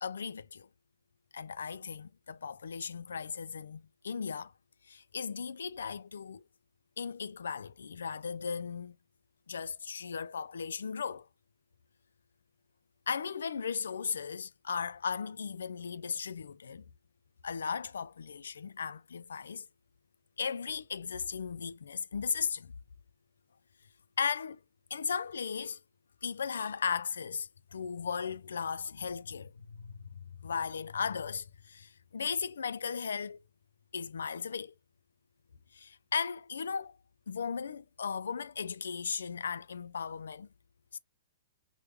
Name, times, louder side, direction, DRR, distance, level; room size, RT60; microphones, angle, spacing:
voice 1, 0.0-0.7 1.3-4.5 4.9-6.4 7.0-9.0 9.5-11.3 13.1-16.8 17.4-19.7 20.4-22.8 24.2-24.6 24.9-25.8 26.2-30.1 30.4-33.4 33.9-34.7 35.7-37.0 37.3-40.5 40.9-41.0, left 6 dB, 90° left, 0.3 m, -36 dB
3.4 x 2.2 x 3.0 m
hypercardioid pair, 135°, 0 cm